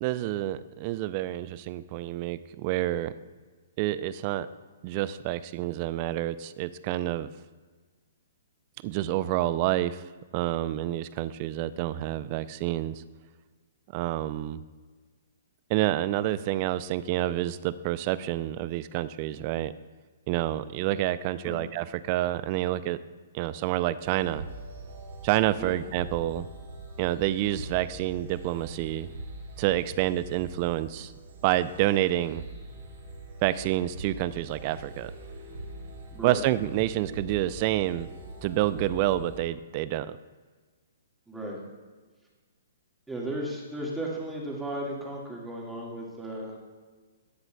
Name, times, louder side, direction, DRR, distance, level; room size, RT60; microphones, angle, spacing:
voice 1, 0.0-3.1 3.8-4.5 4.8-7.3 8.8-10.0 10.3-13.0 13.9-14.6 15.7-19.7 20.3-23.0 23.3-24.4 25.2-26.5 27.0-29.1 29.6-31.1 31.4-32.4 33.4-35.1 36.2-38.1 38.4-40.2, right 14 dB, 40° right, 15 dB, 0.3 m, -28 dB
sound 1, 24.0-39.4, right 1 dB, 60° right, 2.2 m, -43 dB
voice 2, 36.1-36.4 41.3-41.6 43.1-46.6, right 1 dB, 5° right, -3 dB, 1.8 m, -35 dB
13.0 x 8.0 x 2.3 m, 1.4 s
hypercardioid pair, 135°, 0 cm